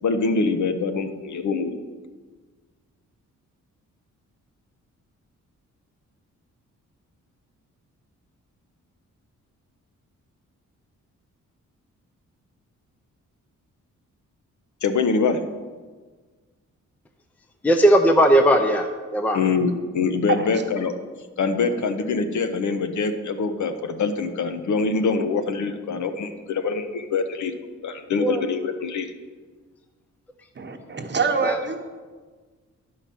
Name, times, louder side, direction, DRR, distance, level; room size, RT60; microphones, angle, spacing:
voice 1, 0.0-1.8 14.8-15.4 19.3-20.9 21.4-27.5 27.8-29.1, left 4 dB, 70° left, 8 dB, 0.9 m, -24 dB
voice 2, 17.6-19.4 28.2-28.4 31.4-31.6, equal, 5° left, 6 dB, 0.5 m, -18 dB
voice 3, 30.6-31.8, right 5 dB, 35° right, 5 dB, 1.0 m, -25 dB
11.0 x 4.8 x 5.8 m, 1.4 s
cardioid pair, 105°, 31 cm